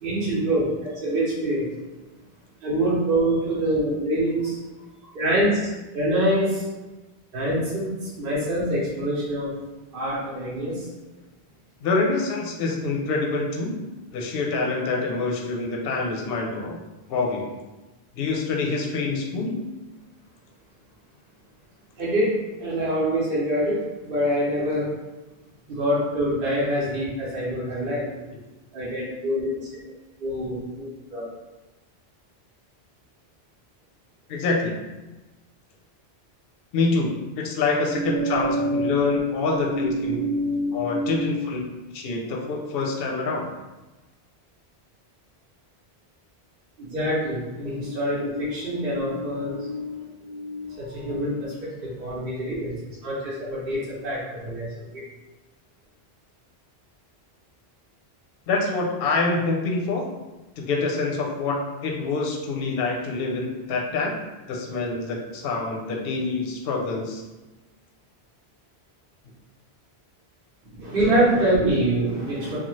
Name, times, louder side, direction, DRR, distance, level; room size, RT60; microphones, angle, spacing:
voice 1, 0.0-1.7 2.6-4.6 5.1-5.6 5.9-6.6 7.3-9.5 9.9-10.9 22.0-24.9 25.7-28.1 28.7-29.6 30.2-31.3 37.9-39.2 39.5-41.4 46.8-54.7 54.9-55.0 70.7-72.6, right 1 dB, 60° right, -8 dB, 0.9 m, -25 dB
voice 2, 11.8-13.8 14.1-16.8 17.1-17.4 18.2-19.6 34.3-34.7 36.7-37.1 37.4-40.2 40.7-41.6 41.9-43.5 58.5-60.0 60.6-64.1 64.5-67.2, left 3 dB, 70° left, -1 dB, 0.7 m, -26 dB
2.6 x 2.3 x 3.0 m, 1.1 s
omnidirectional pair, 1.1 m